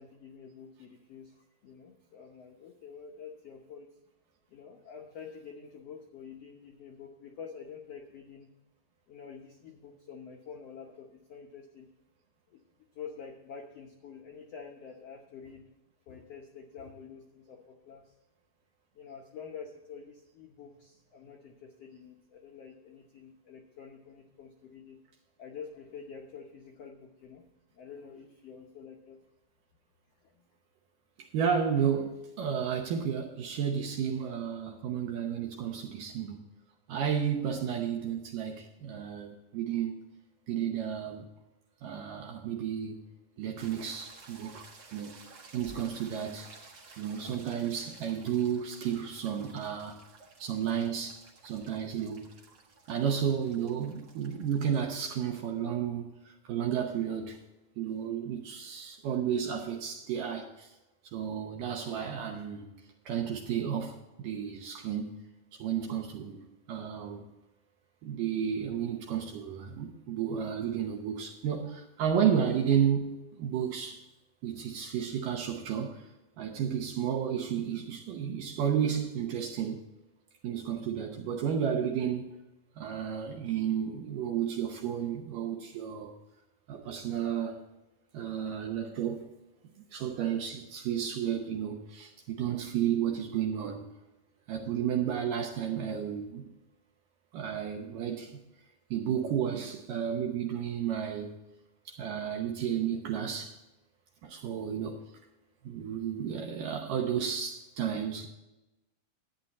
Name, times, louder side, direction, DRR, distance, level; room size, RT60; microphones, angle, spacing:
voice 1, 0.0-3.9 4.5-8.5 9.1-11.9 12.5-12.6 12.9-15.7 16.1-18.1 18.9-25.0 25.4-27.4 27.7-29.2 30.2-30.4, left 6 dB, 75° left, 1.4 m, -47 dB
voice 2, 31.2-36.4 36.9-40.0 40.5-41.3 41.8-43.0 43.4-44.6 44.9-45.2 45.5-46.5 47.0-50.0 50.4-52.3 52.9-57.4 57.8-60.7 61.0-62.7 63.1-65.2 65.6-67.2 68.0-74.1 74.4-76.1 76.4-79.8 80.4-82.3 82.8-86.1 86.7-87.6 88.1-89.3 89.9-93.9 94.5-96.4 97.3-98.4 98.9-101.4 101.9-103.6 104.2-105.1 105.6-108.3, right 8 dB, 70° right, 2.4 m, -32 dB
sound 1, 43.6-54.9, right 3 dB, 45° right, 1.6 m, -54 dB
11.5 x 9.0 x 4.2 m
omnidirectional pair, 4.2 m